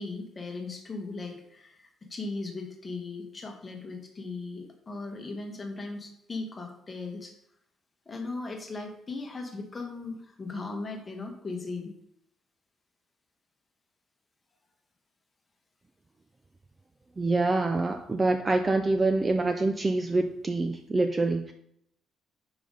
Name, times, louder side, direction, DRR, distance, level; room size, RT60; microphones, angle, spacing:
voice 1, 0.0-7.3 8.1-11.9, left 3 dB, 20° left, 3 dB, 1.1 m, -38 dB
voice 2, 17.2-21.5, right 2 dB, 15° right, 6 dB, 0.3 m, -26 dB
5.7 x 5.0 x 5.2 m, 0.75 s
cardioid pair, 175°, 0 cm